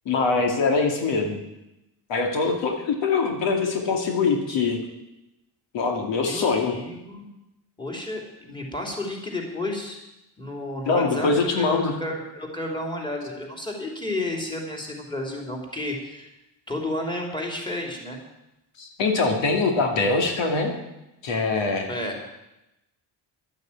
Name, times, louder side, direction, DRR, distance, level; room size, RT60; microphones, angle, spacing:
voice 1, 0.1-1.4 2.1-4.8 5.7-6.8 10.9-11.9 18.8-20.7 21.2-21.9, left 4 dB, 75° left, 3 dB, 2.5 m, -23 dB
voice 2, 6.2-7.3 7.8-10.0 10.4-11.6 12.0-16.3 16.7-18.2 21.9-22.2, left 1 dB, 10° left, 0 dB, 3.5 m, -32 dB
12.0 x 9.3 x 8.8 m, 0.91 s
cardioid pair, 115°, 45 cm